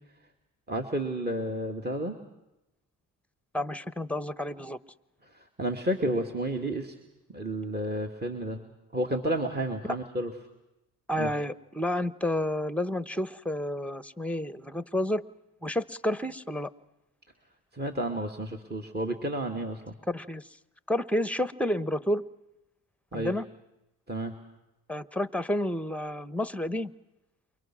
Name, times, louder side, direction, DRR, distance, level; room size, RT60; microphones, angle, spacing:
voice 1, 0.7-2.2 5.3-6.9 7.3-8.6 8.9-10.3 11.2-11.3 17.7-19.9 23.1-23.3 24.1-24.3, right 1 dB, 25° right, 5 dB, 2.5 m, -31 dB
voice 2, 3.5-4.8 11.1-15.2 15.6-16.7 20.1-20.5 20.9-22.2 23.1-23.5 24.9-26.9, left 1 dB, 5° left, 15 dB, 1.0 m, -30 dB
28.5 x 23.5 x 6.2 m, 0.94 s
cardioid pair, 70°, 37 cm